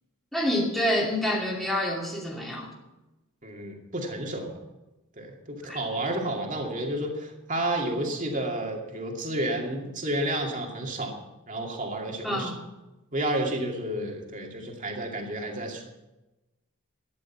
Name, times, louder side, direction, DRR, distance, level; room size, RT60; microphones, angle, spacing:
voice 1, 0.3-2.7 5.7-5.8 12.2-12.6, equal, ahead, -3 dB, 2.5 m, -27 dB
voice 2, 3.4-4.6 5.2-11.2 11.5-12.5 13.1-15.8, right 1 dB, 35° right, 1 dB, 2.4 m, -31 dB
13.5 x 10.0 x 7.2 m, 1.0 s
head